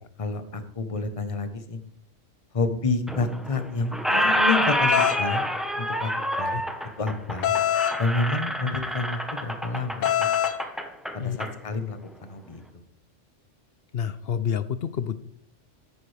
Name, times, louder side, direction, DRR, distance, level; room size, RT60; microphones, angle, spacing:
voice 1, 0.2-1.8 2.5-5.4 5.8-6.1 6.4-6.6 7.0-7.5 8.0-10.3 11.1-12.6, left 3 dB, 30° left, 8 dB, 1.0 m, -29 dB
Squeak, 3.1-3.6 3.9-11.5, equal, ahead, 0.9 m, -27 dB
sound 1, 4.9-5.2 7.4-8.0 10.0-10.6, left 11 dB, 85° left, 1.2 m, -23 dB
voice 2, 13.9-15.2, left 8 dB, 60° left, 13 dB, 0.8 m, -28 dB
14.0 x 10.0 x 3.4 m, 0.69 s
omnidirectional pair, 1.3 m